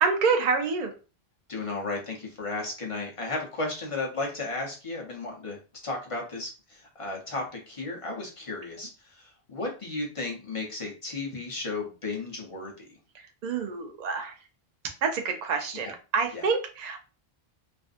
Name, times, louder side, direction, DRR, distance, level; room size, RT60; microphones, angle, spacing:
voice 1, 0.0-0.9 13.4-14.4 15.0-17.0, right 5 dB, 55° right, 5 dB, 0.5 m, -27 dB
voice 2, 1.5-5.6 5.8-12.9 15.7-15.9 16.3-16.5, left 3 dB, 35° left, -1 dB, 0.7 m, -34 dB
2.5 x 2.5 x 2.4 m, 0.34 s
omnidirectional pair, 1.0 m